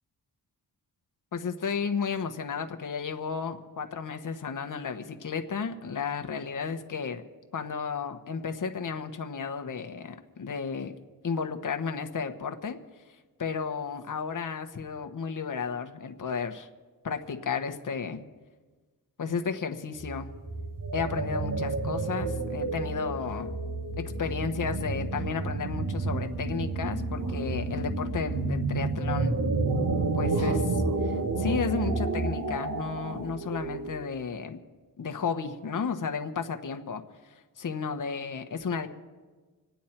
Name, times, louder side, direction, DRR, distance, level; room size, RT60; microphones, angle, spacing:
voice 1, 1.3-7.2 7.5-10.9 11.2-12.8 13.4-16.7 17.0-18.2 19.2-20.3 20.9-23.5 24.0-29.4 30.1-34.6 35.0-38.9, left 5 dB, 55° left, 6 dB, 1.1 m, -33 dB
sound 1, 20.0-34.1, right 3 dB, 55° right, 1.5 m, -30 dB
26.0 x 9.3 x 4.4 m, 1.3 s
cardioid pair, 80°, 39 cm